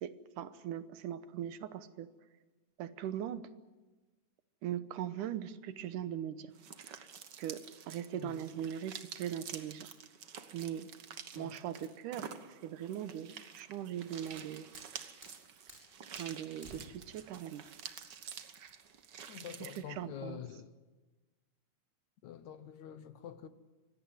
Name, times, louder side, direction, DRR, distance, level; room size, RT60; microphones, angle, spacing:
voice 1, 0.0-2.1 2.8-3.5 4.6-6.5 7.4-9.9 10.5-10.9 11.3-14.7 16.2-17.7 19.6-20.4, right 10 dB, 85° right, 2.5 m, -40 dB
sound 1, 6.5-19.8, right 7 dB, 55° right, 1.2 m, -49 dB
Fire, 14.1-20.1, equal, 15° right, 6.2 m, -58 dB
voice 2, 19.3-20.7 22.2-23.5, left 9 dB, 70° left, 2.3 m, -46 dB
24.5 x 17.5 x 9.6 m
omnidirectional pair, 3.6 m